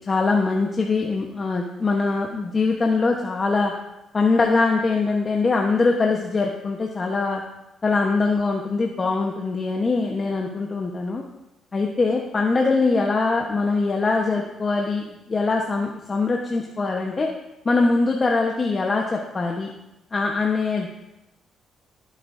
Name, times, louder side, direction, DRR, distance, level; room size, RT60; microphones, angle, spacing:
voice 1, 0.1-3.7 4.1-7.4 7.8-11.2 11.7-17.3 17.6-19.7 20.1-20.9, left 3 dB, 35° left, 0 dB, 1.1 m, -22 dB
15.5 x 8.6 x 2.7 m, 0.92 s
cardioid pair, 90°, 0 cm